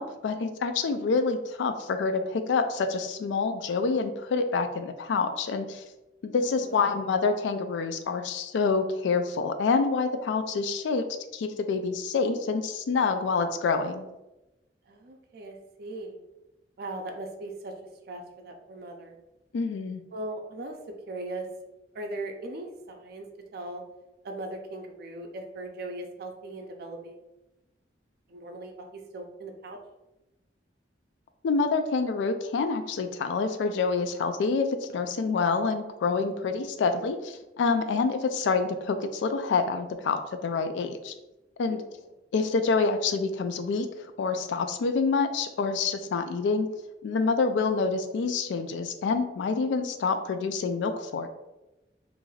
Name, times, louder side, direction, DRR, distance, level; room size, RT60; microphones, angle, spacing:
voice 1, 0.0-5.8 6.2-11.0 11.3-14.1 19.5-20.0 31.4-41.1 41.6-41.8 42.3-43.9 44.2-46.7 47.0-51.3, left 4 dB, 85° left, 8 dB, 0.3 m, -27 dB
voice 2, 6.6-6.9 14.9-16.2 16.8-17.7 18.1-19.2 20.1-20.8 21.1-21.5 21.9-23.3 23.5-23.8 24.2-27.2 28.3-29.8 41.7-41.9, right 2 dB, 60° right, 3 dB, 0.4 m, -39 dB
2.5 x 2.3 x 3.1 m, 0.97 s
head